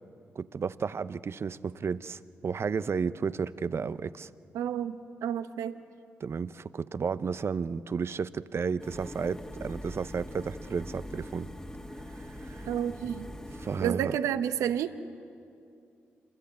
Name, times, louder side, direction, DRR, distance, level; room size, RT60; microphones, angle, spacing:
voice 1, 0.4-4.3 6.2-11.5 12.4-12.7 13.6-14.2, right 5 dB, 50° right, 15 dB, 0.7 m, -32 dB
voice 2, 4.5-5.8 12.7-13.3 13.8-14.9, right 9 dB, 80° right, 11 dB, 0.9 m, -30 dB
sound 1, 8.8-13.9, equal, 15° left, 2.0 m, -42 dB
27.0 x 21.5 x 8.6 m, 2.5 s
supercardioid pair, 45°, 5 cm